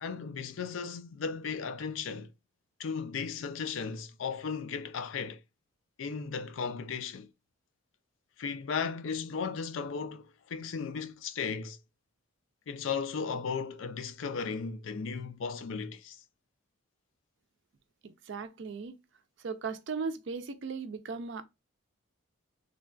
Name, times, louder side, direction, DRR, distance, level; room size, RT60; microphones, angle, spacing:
voice 1, 0.0-2.3 2.8-5.4 6.0-7.3 8.4-11.8 12.7-16.2, left 5 dB, 70° left, 0.4 m, -36 dB
voice 2, 18.0-18.9 19.4-21.4, right 5 dB, 60° right, 0.4 m, -37 dB
3.3 x 2.2 x 2.3 m
head